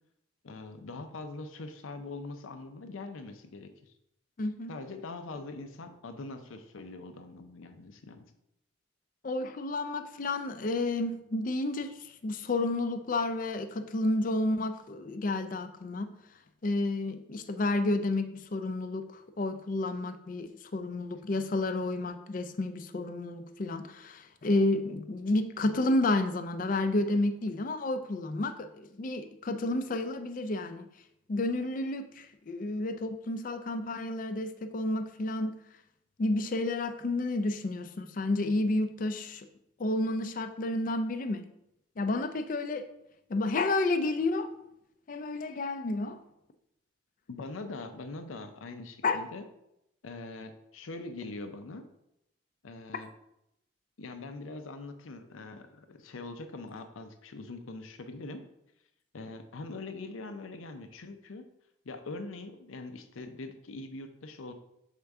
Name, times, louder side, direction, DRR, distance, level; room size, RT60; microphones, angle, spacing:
voice 1, 0.4-3.9 4.7-8.3 47.3-49.4 50.0-51.8 52.6-53.1 54.0-58.5 59.1-61.5 61.8-64.5, left 3 dB, 90° left, 7 dB, 0.6 m, -42 dB
voice 2, 4.4-4.7 9.2-16.2 16.6-30.9 31.3-35.6 36.2-39.5 39.8-41.5 42.0-42.9 43.3-44.5 45.1-46.2 49.0-49.2, left 2 dB, 40° left, 8 dB, 0.4 m, -31 dB
6.6 x 4.4 x 3.5 m, 0.82 s
head